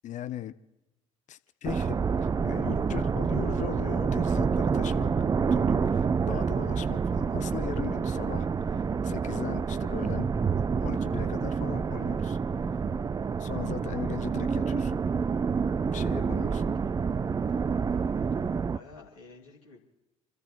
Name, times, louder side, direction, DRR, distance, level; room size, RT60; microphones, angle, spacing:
voice 1, 0.0-0.5 1.3-5.1 5.5-10.3 10.8-12.4 13.4-15.0 15.9-16.6, left 11 dB, 45° left, 0.7 m, -39 dB
sound 1, 1.6-18.8, right 5 dB, 20° right, 0.5 m, -28 dB
voice 2, 17.9-19.8, left 3 dB, 75° left, 3.2 m, -52 dB
29.5 x 13.5 x 3.2 m
figure-of-eight pair, 55°, 18 cm